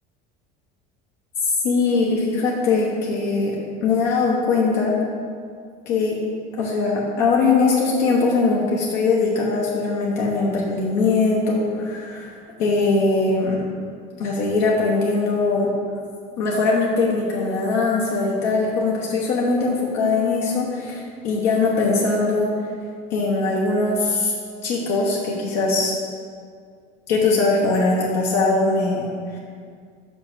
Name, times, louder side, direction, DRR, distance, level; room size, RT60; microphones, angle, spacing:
voice 1, 1.5-4.9 5.9-6.2 6.6-13.6 14.2-15.7 16.4-22.5 23.1-24.3 24.6-25.9 27.1-29.4, left 3 dB, 85° left, -4 dB, 1.2 m, -21 dB
5.7 x 5.4 x 6.1 m, 2.2 s
cardioid pair, 125°, 20 cm